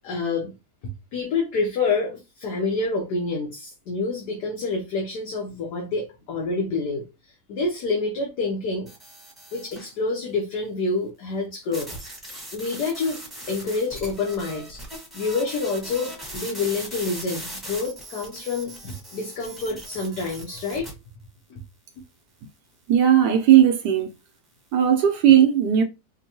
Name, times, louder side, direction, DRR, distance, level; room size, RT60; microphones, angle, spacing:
voice 1, 0.0-0.5 1.1-7.0 7.5-8.9 9.5-11.9 12.5-13.2 13.5-14.8 15.1-20.9 21.5-21.6, left 3 dB, 65° left, 1.3 m, -27 dB
sound 1, 8.9-9.9 11.7-20.9, right 1 dB, ahead, 0.9 m, -39 dB
voice 2, 22.9-24.1 24.7-25.8, right 10 dB, 75° right, 1.1 m, -17 dB
5.2 x 2.2 x 2.8 m
omnidirectional pair, 2.0 m